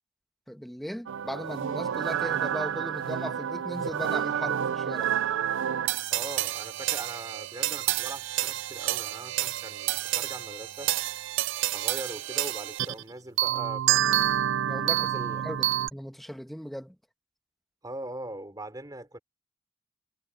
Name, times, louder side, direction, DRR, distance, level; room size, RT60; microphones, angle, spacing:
voice 1, 0.5-5.1 14.6-15.1 15.4-15.7 15.9-17.0, equal, ahead, 1.2 m, -37 dB
sound 1, 1.1-13.0 13.4-15.9, right 11 dB, 65° right, 0.4 m, -29 dB
voice 2, 6.1-10.9 11.7-14.1 15.0-15.5 17.8-19.2, right 1 dB, 20° right, 3.5 m, -41 dB
head